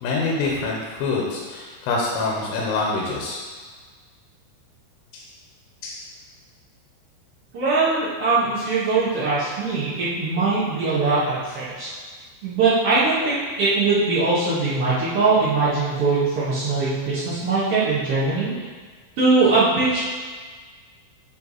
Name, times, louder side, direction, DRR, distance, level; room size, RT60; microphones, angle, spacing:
voice 1, 0.0-3.4 5.1-5.2 5.8-6.0, left 3 dB, 90° left, -3 dB, 3.4 m, -25 dB
voice 2, 7.5-11.9 12.4-18.5 19.2-20.0, right 3 dB, 85° right, -11 dB, 1.3 m, -21 dB
10.0 x 3.5 x 4.1 m, 1.5 s
omnidirectional pair, 5.3 m